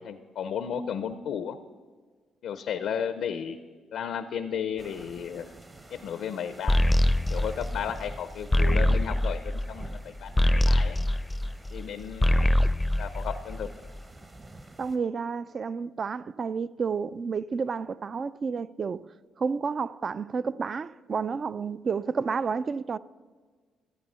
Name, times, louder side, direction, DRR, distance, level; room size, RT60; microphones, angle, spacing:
voice 1, 0.0-1.6 2.4-3.6 3.9-5.5 5.9-6.9 7.3-11.0 11.7-12.6 13.0-13.9, left 8 dB, 75° left, 0.5 m, -34 dB
sound 1, 4.8-15.0, right 2 dB, 25° right, 0.9 m, -48 dB
sound 2, 6.7-11.8 12.1-13.9, left 1 dB, 15° left, 0.5 m, -24 dB
voice 2, 14.8-19.0 19.4-23.0, right 5 dB, 45° right, 0.3 m, -30 dB
13.5 x 8.7 x 5.5 m
cardioid pair, 90°, 0 cm